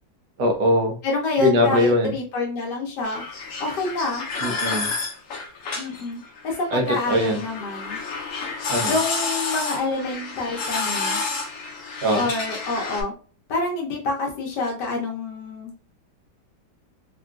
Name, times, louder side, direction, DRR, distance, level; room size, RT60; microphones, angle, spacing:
voice 1, 0.4-1.0 1.4-2.1 4.4-4.9 6.7-7.4 8.7-8.9 12.0-12.2, left 1 dB, 65° right, 2 dB, 1.1 m, -21 dB
voice 2, 1.0-3.2 3.6-4.2 5.8-6.2 6.4-8.0 8.8-11.2 12.1-13.1 13.5-15.7, left 3 dB, 70° left, 0 dB, 1.2 m, -27 dB
sound 1, 3.0-13.0, left 4 dB, 85° left, 0.6 m, -30 dB
3.7 x 2.3 x 2.3 m, 0.40 s
omnidirectional pair, 2.2 m